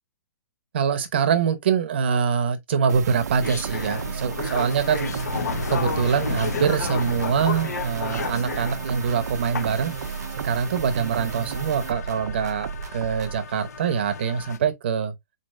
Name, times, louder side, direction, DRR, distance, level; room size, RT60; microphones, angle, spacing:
voice 1, 0.7-5.2 5.7-9.9 10.4-15.1, right 7 dB, 40° right, 0.7 m, -24 dB
sound 1, 2.9-13.4, right 7 dB, 85° right, 0.5 m, -33 dB
sound 2, 3.4-14.6, left 5 dB, 80° left, 0.7 m, -33 dB
4.0 x 3.1 x 2.5 m
hypercardioid pair, 175°, 9 cm